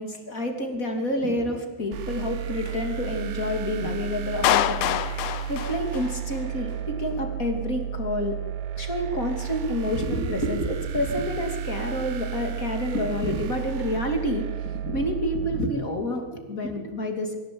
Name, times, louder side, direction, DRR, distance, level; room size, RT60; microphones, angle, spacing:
voice 1, 0.0-8.4 8.8-14.5 14.7-17.4, left 1 dB, 25° left, 4 dB, 2.0 m, -28 dB
sound 1, 1.9-15.6, right 10 dB, 75° right, 3.6 m, -33 dB
Clapping, 4.4-6.5, left 14 dB, 80° left, 2.3 m, -25 dB
25.5 x 16.5 x 8.7 m, 1.3 s
omnidirectional pair, 5.4 m